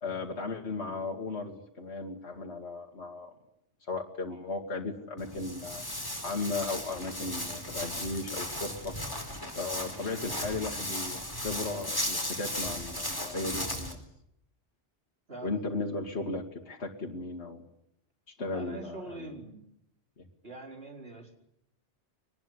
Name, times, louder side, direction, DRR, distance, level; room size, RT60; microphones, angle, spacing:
voice 1, 0.0-3.3 3.9-5.8 6.2-9.0 9.6-14.0 15.4-17.7 18.4-19.3 20.2-20.3, left 3 dB, 65° left, 1 dB, 2.5 m, -36 dB
Walk footsteps, 5.2-13.9, left 1 dB, 15° left, 4.5 m, -36 dB
voice 2, 15.3-15.6 18.5-19.6 20.4-21.4, right 3 dB, 55° right, 1 dB, 5.1 m, -43 dB
24.0 x 20.0 x 10.0 m, 0.77 s
omnidirectional pair, 1.2 m